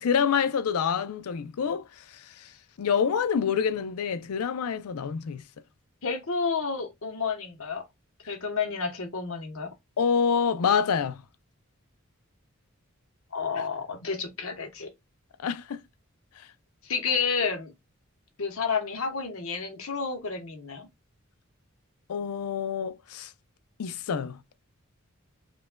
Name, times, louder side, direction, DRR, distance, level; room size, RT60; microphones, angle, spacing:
voice 1, 0.0-2.5 2.8-5.4 10.0-11.2 15.4-15.8 22.1-23.3 23.8-24.4, left 6 dB, 85° left, 0.4 m, -27 dB
voice 2, 6.0-7.8 8.3-9.7 13.3-14.9 16.8-17.7 18.4-20.9, left 5 dB, 70° left, 1.0 m, -30 dB
5.0 x 2.3 x 2.2 m
head